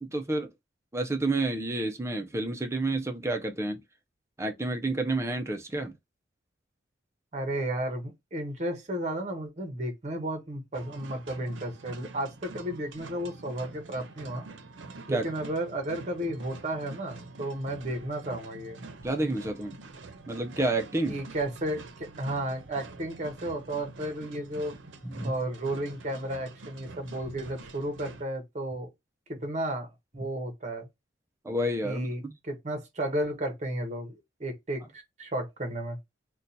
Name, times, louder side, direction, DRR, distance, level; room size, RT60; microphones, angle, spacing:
voice 1, 0.0-0.5 0.9-3.8 4.4-5.9 15.1-15.3 19.0-19.8 20.3-21.2 25.0-25.3 31.4-32.3, right 2 dB, 15° right, 0.4 m, -29 dB
voice 2, 7.3-14.5 15.1-18.8 21.1-24.7 25.2-28.9 29.3-30.9 31.8-36.0, right 1 dB, 35° right, 0.8 m, -33 dB
sound 1, 10.7-28.2, right 3 dB, 85° right, 0.6 m, -46 dB
2.6 x 2.2 x 3.9 m
head